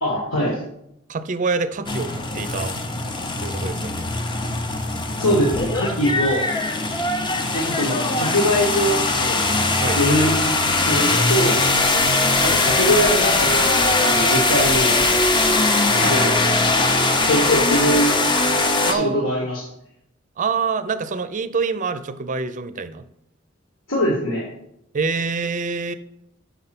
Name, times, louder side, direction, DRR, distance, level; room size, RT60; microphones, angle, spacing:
voice 1, 0.0-0.6 5.2-6.4 7.5-9.4 9.9-10.4 10.7-11.5 12.4-13.7 14.0-15.0 16.0-16.3 17.3-18.1 18.9-19.7 23.9-24.5, equal, 70° left, -3 dB, 1.6 m, -22 dB
voice 2, 1.1-2.8 3.4-4.1 4.8-4.9 5.3-5.4 9.8-10.0 18.9-19.3 20.4-23.0 24.9-25.9, right 4 dB, 40° right, 12 dB, 0.5 m, -26 dB
sound 1, 1.9-18.9, left 2 dB, 25° left, 0.7 m, -20 dB
5.9 x 5.4 x 5.9 m, 0.79 s
head